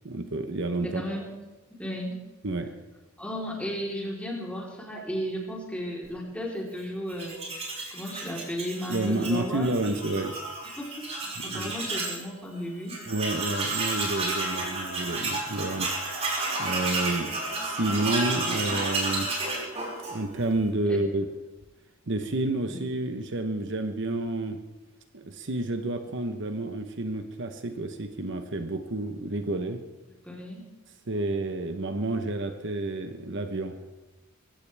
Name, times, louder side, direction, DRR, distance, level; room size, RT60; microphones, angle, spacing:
voice 1, 0.0-1.0 2.4-2.8 8.9-10.4 11.4-11.7 13.1-16.0 16.6-17.3 17.6-19.3 20.1-21.3 22.1-24.6 25.1-29.8 31.1-33.8, right 2 dB, 55° right, 7 dB, 1.0 m, -30 dB
voice 2, 0.8-1.3 1.7-2.2 3.2-9.8 10.8-13.0 20.9-21.0 22.7-22.8 30.2-30.6, equal, 5° left, -3 dB, 3.7 m, -35 dB
Tools, 7.1-12.2 12.6-12.7 12.9-20.5, right 2 dB, 30° right, 5.3 m, -31 dB
24.0 x 16.0 x 3.5 m, 1.2 s
head